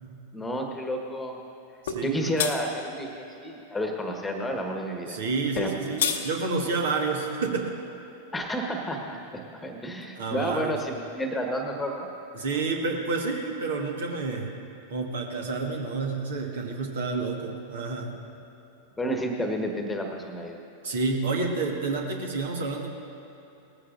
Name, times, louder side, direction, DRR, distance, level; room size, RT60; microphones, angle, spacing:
voice 1, 0.3-1.4 2.0-5.2 5.6-5.8 8.3-9.2 9.5-12.1 19.0-20.6, equal, 10° left, 3 dB, 1.4 m, -30 dB
voice 2, 1.8-2.3 5.1-7.7 10.2-10.8 12.3-14.5 14.9-18.1 20.8-22.9, right 3 dB, 60° right, 1 dB, 1.6 m, -29 dB
sound 1, 1.9-2.0 2.4-2.6 5.6-6.2, left 7 dB, 60° left, 1.0 m, -27 dB
19.0 x 14.5 x 2.6 m, 3.0 s
figure-of-eight pair, 90°, 0 cm